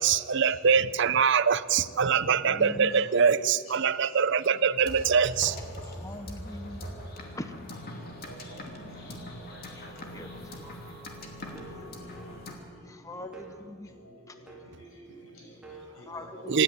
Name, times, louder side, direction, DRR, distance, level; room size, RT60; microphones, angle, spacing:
voice 1, 0.0-5.6 16.5-16.6, right 6 dB, 60° right, 15 dB, 0.6 m, -23 dB
voice 2, 1.8-3.0 3.3-4.2 4.5-4.6 4.9-5.0 5.6-5.9 6.7-6.9 8.0-9.0 9.3-10.8 11.5-13.3 13.9-16.6, equal, 85° left, 0 dB, 6.8 m, -49 dB
voice 3, 2.4-3.0 5.8-6.9 7.3-7.7 8.7-9.2 9.7-10.5 11.4-12.2 12.8-13.9 14.3-14.4 15.9-16.6, left 1 dB, 15° left, 8 dB, 0.7 m, -43 dB
sound 1, 4.8-12.6, left 1 dB, 45° left, 2.7 m, -41 dB
sound 2, 9.5-10.0 10.6-11.0 11.5-12.7 13.3-13.8 14.5-14.9 15.6-15.9, right 4 dB, 5° right, 2.9 m, -50 dB
26.0 x 10.5 x 9.6 m, 2.5 s
head